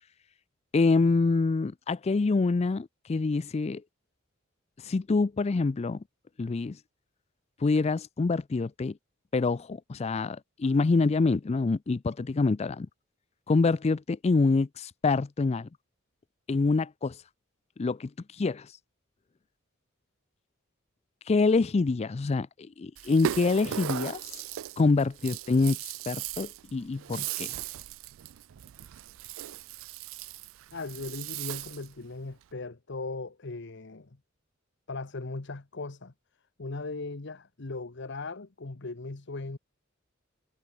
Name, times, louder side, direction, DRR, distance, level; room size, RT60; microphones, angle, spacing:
voice 1, 0.7-3.8 4.8-6.0 6.4-6.8 7.6-8.9 9.3-12.9 13.5-15.7 16.5-17.2 17.8-18.7 21.3-24.2 24.8-25.8 26.1-27.6, left 3 dB, 30° left, 0.4 m, -26 dB
Rattle (instrument), 23.0-31.9, right 11 dB, 75° right, 0.4 m, -38 dB
voice 2, 30.7-34.1 34.9-36.1 36.6-39.6, left 3 dB, 60° left, 1.1 m, -38 dB
head